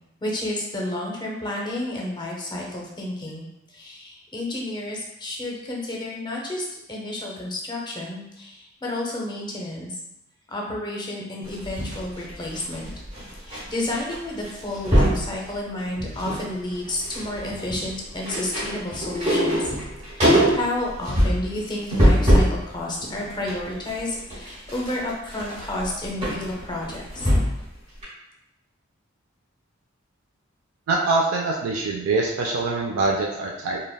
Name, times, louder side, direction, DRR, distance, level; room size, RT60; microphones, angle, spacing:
voice 1, 0.2-10.0 10.5-12.9 13.4-19.7 20.2-27.3, left 1 dB, 20° left, -2 dB, 0.5 m, -31 dB
sound 1, 11.5-13.6 13.9-14.1 14.4-15.2 15.8-16.4 16.7-22.6 23.0-27.7 28.0-28.1, equal, 35° right, 1.1 m, -23 dB
voice 2, 30.9-33.8, right 3 dB, 90° right, -1 dB, 0.3 m, -24 dB
3.3 x 2.1 x 2.2 m, 0.86 s
head